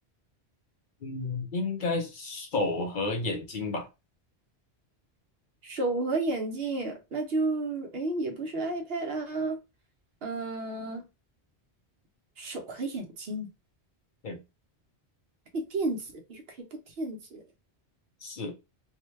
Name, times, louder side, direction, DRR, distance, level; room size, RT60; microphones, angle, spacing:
voice 1, 1.0-3.9 14.2-14.4 18.2-18.5, left 3 dB, 55° left, 0.7 m, -31 dB
voice 2, 5.6-9.6 10.2-11.0 12.4-13.5 15.5-16.4 17.0-17.4, right 2 dB, 65° right, 1.0 m, -31 dB
2.7 x 2.2 x 3.1 m
omnidirectional pair, 1.1 m